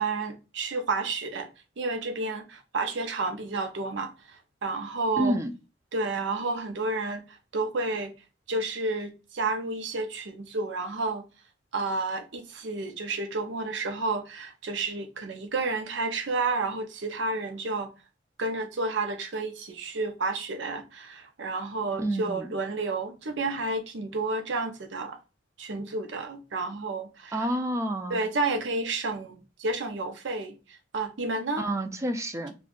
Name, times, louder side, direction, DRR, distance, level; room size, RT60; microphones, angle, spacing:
voice 1, 0.0-1.5 1.8-5.4 5.9-8.1 8.5-11.2 11.7-17.9 18.4-25.2 25.6-27.5 28.1-31.7, right 3 dB, 70° right, 0.6 m, -31 dB
voice 2, 5.2-5.5 22.0-22.5 27.3-28.2 31.6-32.5, right 1 dB, 15° right, 0.3 m, -29 dB
2.5 x 2.3 x 3.6 m
head